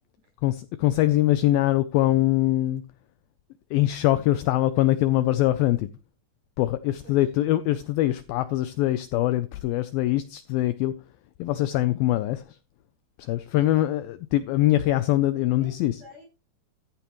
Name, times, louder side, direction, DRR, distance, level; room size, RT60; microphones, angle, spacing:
voice 1, 0.4-2.8 3.7-5.9 6.6-11.0 11.4-12.6 13.2-16.0, left 15 dB, 90° left, 2.0 m, -23 dB
voice 2, 6.8-7.2 15.3-16.3, left 1 dB, 50° right, 7.1 m, -50 dB
14.0 x 9.2 x 3.1 m
omnidirectional pair, 4.9 m